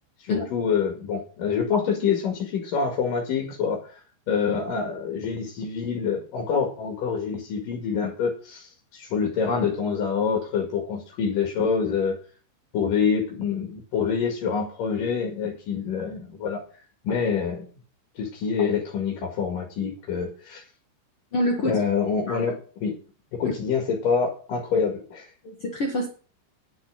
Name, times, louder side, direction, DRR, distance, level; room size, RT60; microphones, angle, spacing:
voice 1, 0.2-3.9 4.3-12.2 12.7-16.6 17.0-17.7 18.1-20.6 21.6-23.0 23.3-25.3, left 6 dB, 55° left, 1 dB, 3.1 m, -26 dB
voice 2, 21.3-21.8 22.3-22.4 25.4-26.1, left 1 dB, 80° left, 0 dB, 1.2 m, -26 dB
10.5 x 6.0 x 8.7 m, 0.40 s
omnidirectional pair, 5.5 m